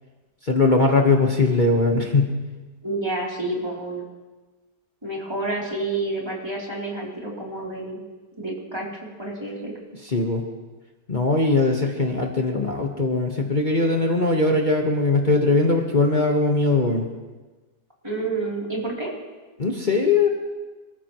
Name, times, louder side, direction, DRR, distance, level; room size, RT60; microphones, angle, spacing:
voice 1, 0.4-2.3 10.0-10.4 11.1-17.1 19.6-20.3, left 3 dB, 30° left, 1 dB, 1.2 m, -20 dB
voice 2, 2.8-4.0 5.0-8.0 8.4-9.8 18.0-19.1, right 2 dB, 15° right, -4 dB, 3.1 m, -29 dB
27.0 x 14.5 x 3.0 m, 1.2 s
omnidirectional pair, 1.8 m